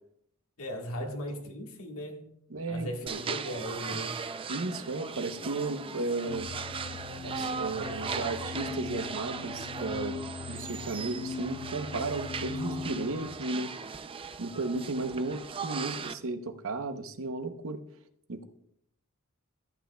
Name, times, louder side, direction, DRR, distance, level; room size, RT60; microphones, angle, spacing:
voice 1, 0.6-2.3 2.7-4.2, equal, 75° left, 1.6 m, -37 dB
voice 2, 2.5-3.2 4.5-6.5 7.2-13.7 14.4-17.8 18.3-18.4, right 3 dB, 65° right, 0.8 m, -34 dB
sound 1, 3.1-16.1, right 5 dB, 25° right, 0.4 m, -38 dB
sound 2, 6.3-13.3, left 5 dB, 55° left, 0.5 m, -40 dB
14.5 x 8.8 x 2.3 m
head